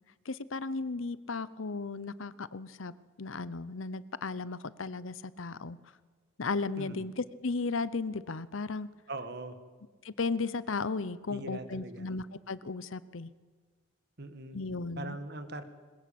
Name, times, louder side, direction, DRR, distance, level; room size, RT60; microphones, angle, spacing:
voice 1, 0.2-2.9 3.2-5.8 6.4-8.9 10.0-13.3 14.5-15.2, left 4 dB, 75° left, 17 dB, 0.8 m, -35 dB
voice 2, 9.1-9.6 11.3-12.1 14.2-14.6 15.0-15.6, right 2 dB, 55° right, 10 dB, 1.8 m, -41 dB
21.5 x 21.0 x 8.6 m, 1.5 s
head